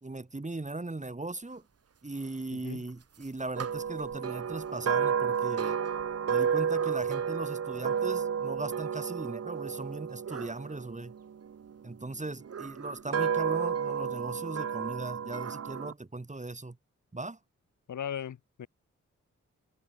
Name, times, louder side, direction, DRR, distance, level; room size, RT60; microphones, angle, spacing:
voice 1, 0.0-1.6 2.0-5.8 6.3-11.1 11.8-16.8 17.1-17.4, right 2 dB, 25° right, 3.1 m, -38 dB
voice 2, 2.5-2.8 17.9-18.7, left 9 dB, 80° left, 1.5 m, -38 dB
sound 1, 3.6-11.7 12.4-15.9, right 7 dB, 55° right, 1.1 m, -31 dB
cardioid pair, 55°, 30 cm